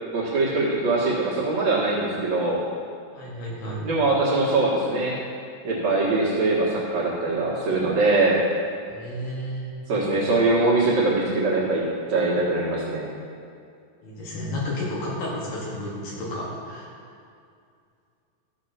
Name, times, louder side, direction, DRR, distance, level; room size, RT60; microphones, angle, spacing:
voice 1, 0.1-2.6 3.8-5.2 5.6-8.4 9.9-11.8 12.1-13.1, right 2 dB, 55° right, -5 dB, 2.6 m, -22 dB
voice 2, 3.1-3.9 8.9-9.7 14.0-16.9, left 1 dB, 65° left, -5 dB, 3.6 m, -32 dB
13.5 x 6.5 x 5.7 m, 2.3 s
omnidirectional pair, 4.2 m